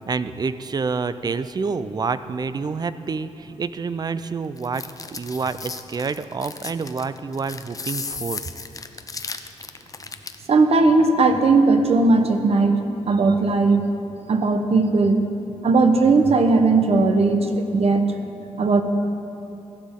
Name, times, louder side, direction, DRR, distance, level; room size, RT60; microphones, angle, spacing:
voice 1, 0.0-4.8 5.1-8.4, right 4 dB, 35° right, 13 dB, 0.4 m, -28 dB
sound 1, 4.6-10.5, left 4 dB, 30° left, 0.5 m, -35 dB
voice 2, 10.5-12.8 13.1-13.8 14.3-15.3 15.6-18.0 18.6-18.8, right 3 dB, 55° right, 7 dB, 0.8 m, -17 dB
14.0 x 11.0 x 3.7 m, 3.0 s
cardioid pair, 95°, 12 cm